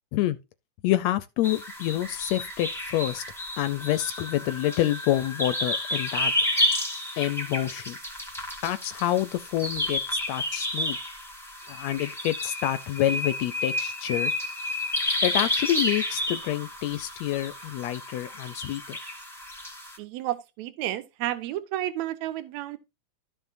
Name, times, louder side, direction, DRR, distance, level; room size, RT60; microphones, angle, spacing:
voice 1, 0.8-3.2 3.6-6.3 7.2-8.0 8.6-11.0 11.7-14.3 15.2-19.0, left 13 dB, 75° left, 1.7 m, -27 dB
sound 1, 1.4-20.0, left 1 dB, ahead, 1.4 m, -31 dB
voice 2, 20.0-22.8, right 14 dB, 75° right, 2.1 m, -31 dB
13.5 x 5.8 x 2.6 m
omnidirectional pair, 3.4 m